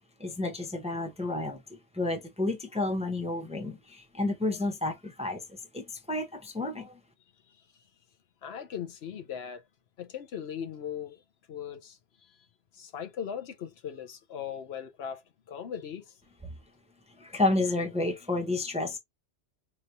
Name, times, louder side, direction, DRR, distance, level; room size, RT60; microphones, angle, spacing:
voice 1, 0.2-7.0 16.4-16.5 17.2-19.0, left 2 dB, 5° right, 0.6 m, -31 dB
voice 2, 8.4-9.6 10.0-11.2 11.5-12.0 12.7-15.2 15.5-16.1, left 8 dB, 70° left, 0.9 m, -38 dB
4.5 x 3.1 x 2.6 m
omnidirectional pair, 1.1 m